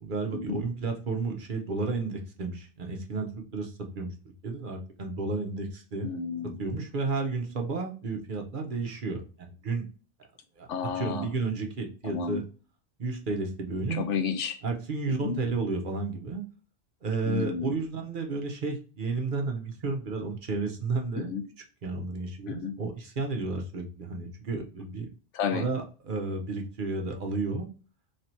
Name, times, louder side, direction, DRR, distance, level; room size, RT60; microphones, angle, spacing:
voice 1, 0.0-4.1 4.4-6.1 6.6-9.9 10.6-10.7 10.9-12.4 13.0-14.1 14.6-16.4 17.0-21.3 21.8-25.1 25.5-27.7, right 3 dB, 50° right, 2 dB, 0.8 m, -32 dB
voice 2, 6.0-6.6 10.7-11.3 12.0-12.4 13.9-14.6 15.2-15.4 17.3-17.8 21.2-21.4 22.5-22.7 25.3-25.6, left 6 dB, 85° left, 8 dB, 1.0 m, -31 dB
3.3 x 2.7 x 4.3 m, 0.38 s
omnidirectional pair, 1.2 m